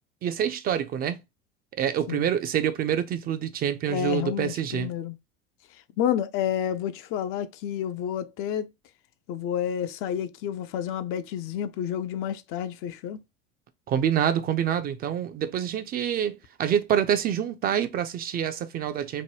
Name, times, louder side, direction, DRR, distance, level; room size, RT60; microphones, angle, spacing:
voice 1, 0.2-1.2 1.8-4.9 13.9-19.2, right 9 dB, 30° right, 0.4 m, -26 dB
voice 2, 3.9-5.2 6.0-8.7 9.3-13.2, left 9 dB, 45° left, 0.4 m, -30 dB
3.0 x 2.1 x 3.0 m
hypercardioid pair, 80°, 31 cm